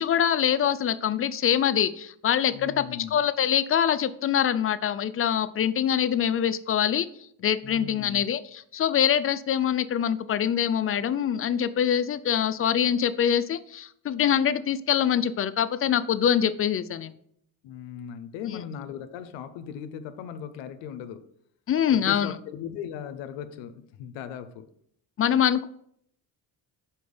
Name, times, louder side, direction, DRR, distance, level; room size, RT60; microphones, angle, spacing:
voice 1, 0.0-2.8 3.1-7.1 7.4-17.1 18.5-18.6 21.7-22.4 25.2-25.7, left 9 dB, 35° left, 0.4 m, -24 dB
voice 2, 2.5-3.2 7.6-8.3 17.6-21.3 21.9-24.7, left 8 dB, 80° left, 0.6 m, -38 dB
5.2 x 4.4 x 5.0 m
supercardioid pair, 70°, 44 cm